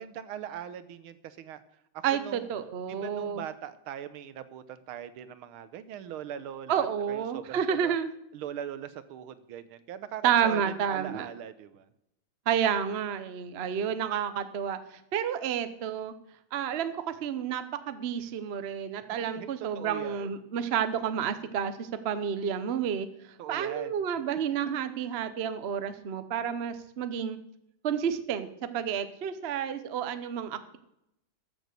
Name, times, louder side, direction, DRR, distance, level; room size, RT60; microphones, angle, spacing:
voice 1, 0.0-1.6 1.9-2.5 2.9-7.9 8.3-11.9 19.1-20.3 23.4-23.9, right 10 dB, 85° right, 13 dB, 1.7 m, -41 dB
voice 2, 2.0-3.4 6.7-8.1 10.2-11.3 12.5-16.1 16.5-27.4 27.8-30.8, right 8 dB, 55° right, 11 dB, 0.7 m, -30 dB
14.0 x 7.2 x 6.6 m, 0.80 s
omnidirectional pair, 2.3 m